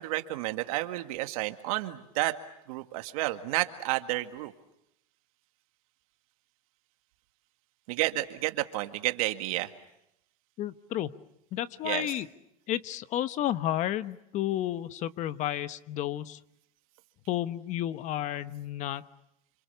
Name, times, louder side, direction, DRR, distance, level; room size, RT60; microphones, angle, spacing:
voice 1, 0.0-2.4 2.7-4.5 7.9-9.7 11.8-12.1, right 18 dB, 65° right, 7 dB, 2.0 m, -31 dB
voice 2, 10.6-11.1 11.5-12.3 12.7-16.4 17.3-19.0, left 12 dB, 40° left, 13 dB, 1.1 m, -31 dB
29.5 x 27.0 x 7.0 m, 0.82 s
supercardioid pair, 125°, 20 cm